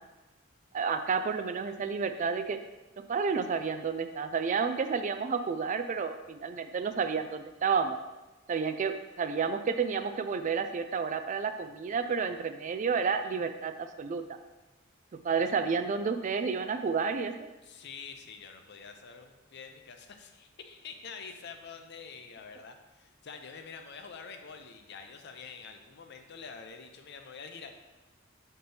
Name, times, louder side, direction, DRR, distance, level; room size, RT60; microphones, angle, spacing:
voice 1, 0.7-2.6 3.1-8.0 8.5-14.4 15.2-17.5, right 5 dB, 40° right, 8 dB, 0.3 m, -30 dB
voice 2, 17.6-27.7, left 5 dB, 55° left, 6 dB, 0.6 m, -46 dB
6.6 x 4.4 x 3.3 m, 1.1 s
head